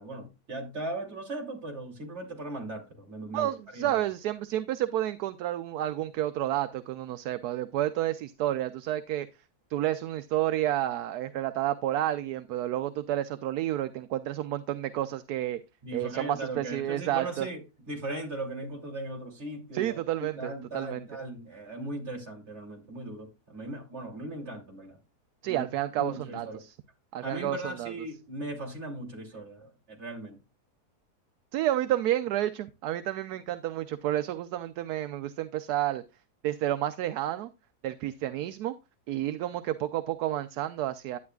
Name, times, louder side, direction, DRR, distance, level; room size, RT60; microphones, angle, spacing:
voice 1, 0.0-4.0 15.8-17.6 17.9-20.0 20.3-25.0 25.4-25.7 26.0-26.6 27.2-30.4, right 2 dB, 40° right, 3.1 m, -38 dB
voice 2, 3.3-9.3 9.7-15.6 15.9-17.5 19.7-21.1 25.4-26.7 27.1-27.9 31.5-36.0 36.4-37.5 37.8-38.7 39.1-41.2, right 13 dB, 75° right, 1.1 m, -30 dB
11.0 x 9.4 x 2.3 m
omnidirectional pair, 1.7 m